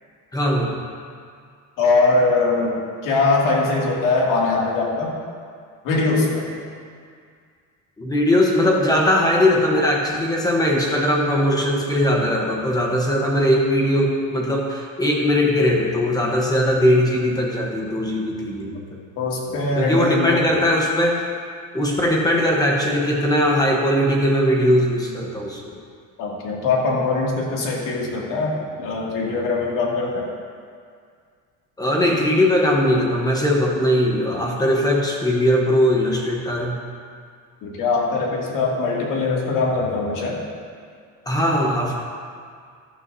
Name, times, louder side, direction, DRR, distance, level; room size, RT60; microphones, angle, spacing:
voice 1, 0.3-0.8 8.0-18.8 19.8-21.3 21.7-25.7 31.8-36.8 41.3-42.0, left 1 dB, 10° left, -1 dB, 1.0 m, -20 dB
voice 2, 1.8-2.8 3.0-5.1 5.8-6.5 19.2-20.5 26.2-30.3 37.6-40.4, left 3 dB, 65° left, -3 dB, 2.3 m, -21 dB
16.0 x 11.0 x 2.7 m, 2.1 s
cardioid pair, 175°, 35 cm